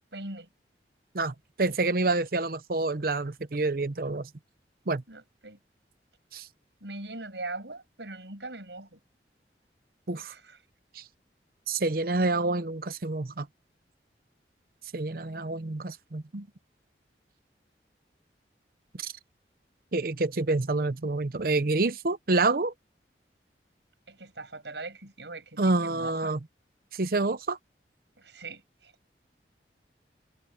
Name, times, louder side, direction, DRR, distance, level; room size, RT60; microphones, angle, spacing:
voice 1, 0.1-0.5 5.1-5.6 6.8-9.0 10.2-10.6 24.1-26.3 28.2-28.9, right 2 dB, 80° right, 6.9 m, -41 dB
voice 2, 1.1-4.3 4.9-5.0 6.3-6.5 10.1-10.3 10.9-11.0 11.7-13.5 14.9-16.5 18.9-19.1 19.9-22.7 25.6-26.4 26.9-27.6, right 3 dB, 55° right, 0.8 m, -28 dB
head